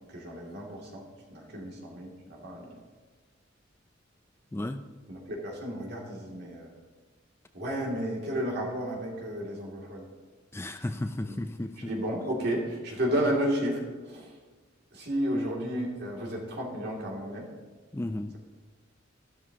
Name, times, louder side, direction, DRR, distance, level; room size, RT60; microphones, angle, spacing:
voice 1, 0.1-1.0 1.3-2.7 5.1-6.7 7.5-10.0 11.2-11.4 11.8-14.4 14.9-17.5, equal, 55° right, -2 dB, 2.7 m, -32 dB
voice 2, 4.5-4.9 10.5-11.9 17.9-18.4, left 1 dB, 15° left, 8 dB, 0.3 m, -34 dB
14.0 x 12.0 x 2.9 m, 1.3 s
head